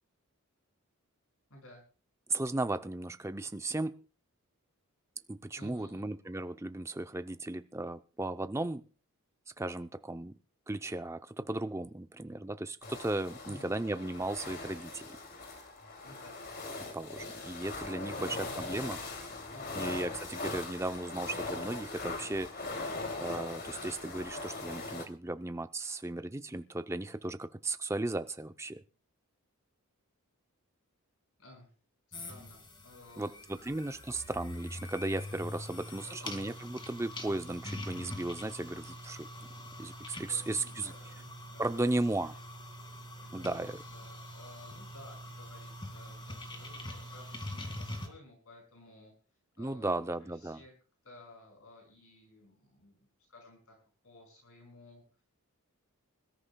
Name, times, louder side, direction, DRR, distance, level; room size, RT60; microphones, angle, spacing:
voice 1, 1.5-1.8 5.6-6.1 13.4-13.8 16.0-16.5 18.0-19.2 19.5-20.0 31.4-31.7 32.1-33.7 35.7-36.4 40.1-42.0 42.3-42.4 42.8-49.1 49.6-50.7 51.0-53.7 54.0-55.2, left 1 dB, 70° left, 1 dB, 5.8 m, -55 dB
voice 2, 2.3-4.0 5.3-8.8 9.6-10.3 10.7-15.0 16.9-19.0 19.8-22.8 23.2-28.8 33.2-39.3 39.8-40.9 41.6-42.3 43.3-43.8 49.6-50.6, right 2 dB, 10° right, 9 dB, 0.6 m, -36 dB
sound 1, 12.8-25.0, left 3 dB, 45° left, 2.7 m, -40 dB
sound 2, 32.1-48.1, left 1 dB, 20° left, 2.2 m, -44 dB
26.0 x 13.5 x 2.3 m, 0.36 s
head